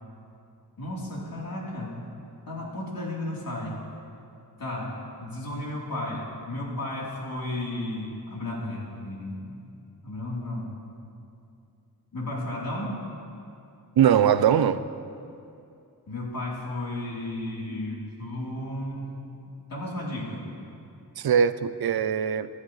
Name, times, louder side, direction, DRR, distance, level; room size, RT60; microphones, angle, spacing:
voice 1, 0.8-2.0 2.5-3.8 4.6-9.7 10.0-10.7 12.1-13.0 16.1-19.3 19.7-20.4, left 1 dB, 70° left, -5 dB, 3.5 m, -33 dB
voice 2, 14.0-14.8 21.2-22.5, right 8 dB, 80° right, 14 dB, 0.6 m, -21 dB
26.0 x 11.5 x 3.2 m, 2.6 s
wide cardioid pair, 130°, 36 cm